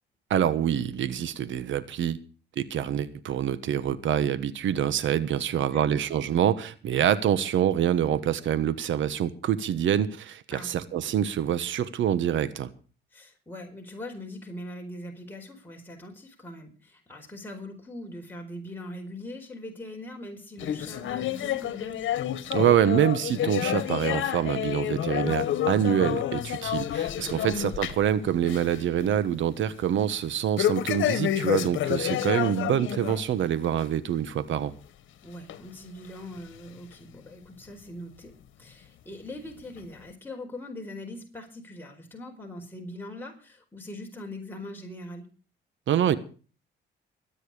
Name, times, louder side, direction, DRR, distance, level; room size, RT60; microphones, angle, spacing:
voice 1, 0.3-2.2 2.6-12.7 22.5-34.7 45.9-46.2, right 10 dB, 75° right, 1.3 m, -26 dB
voice 2, 5.4-5.9 10.5-10.7 13.1-22.1 27.3-27.6 32.0-32.5 35.2-45.3, left 1 dB, 10° left, 4.7 m, -41 dB
sound 1, 20.6-28.1 28.4-28.8 29.1-29.2 30.6-33.2 33.6-33.8 34.5-34.6 35.5-35.6 36.4-36.5, left 11 dB, 75° left, 1.5 m, -29 dB
22.5 x 9.2 x 5.0 m
cardioid pair, 90°, 20 cm